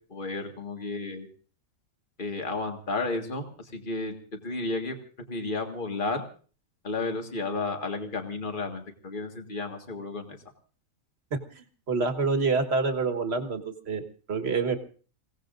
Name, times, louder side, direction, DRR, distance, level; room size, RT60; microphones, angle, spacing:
voice 1, 0.1-1.3 2.2-5.0 5.3-6.2 6.8-10.4, left 3 dB, 40° left, 4 dB, 2.0 m, -32 dB
voice 2, 11.5-14.8, right 4 dB, 50° right, 7 dB, 1.7 m, -27 dB
28.5 x 17.0 x 2.6 m, 0.40 s
omnidirectional pair, 1.4 m